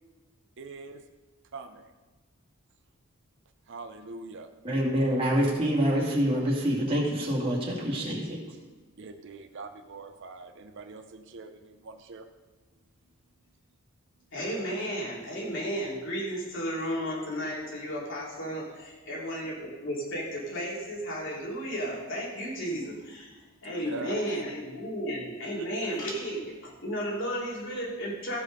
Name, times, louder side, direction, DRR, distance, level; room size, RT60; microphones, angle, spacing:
voice 1, 0.6-1.0 1.5-1.9 3.7-4.5 9.0-12.3 23.8-24.2, right 3 dB, 60° right, 6 dB, 0.6 m, -42 dB
voice 2, 4.6-8.4, equal, 25° right, -4 dB, 2.5 m, -26 dB
voice 3, 14.3-28.4, equal, 60° left, -4 dB, 3.1 m, -33 dB
15.5 x 5.3 x 5.3 m, 1.3 s
head